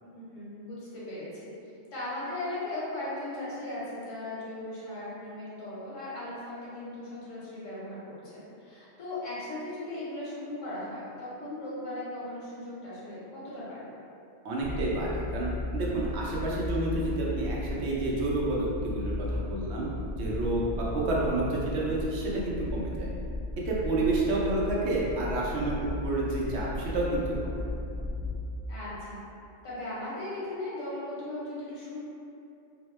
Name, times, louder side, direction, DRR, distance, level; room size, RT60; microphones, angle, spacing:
voice 1, 0.0-1.5 1.9-13.9 28.7-29.2 29.6-32.0, left 1 dB, 85° left, -9 dB, 1.3 m, -38 dB
voice 2, 14.4-19.9 20.1-23.1 23.6-27.6, right 2 dB, 70° right, -5 dB, 0.8 m, -29 dB
sound 1, 14.6-28.4, left 2 dB, 20° right, 0.7 m, -35 dB
2.8 x 2.1 x 3.0 m, 2.7 s
omnidirectional pair, 1.3 m